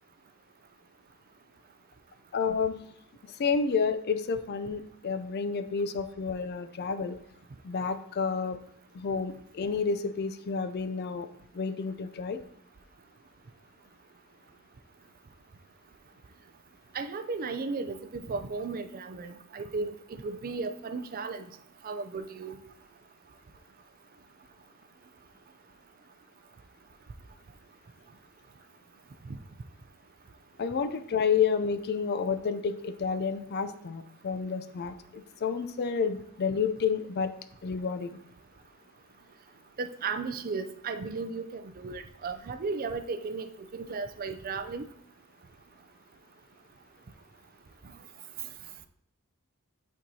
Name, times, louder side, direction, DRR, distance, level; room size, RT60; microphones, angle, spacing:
voice 1, 2.3-2.8 3.4-7.2 7.6-8.6 8.9-11.3 11.5-12.4 30.6-37.3 37.6-38.1, left 5 dB, 45° left, 11 dB, 0.4 m, -30 dB
voice 2, 16.9-19.9 20.2-21.4 21.8-22.6 29.3-29.4 39.8-44.9, right 4 dB, 40° right, 9 dB, 0.4 m, -35 dB
8.4 x 4.5 x 2.7 m, 0.71 s
head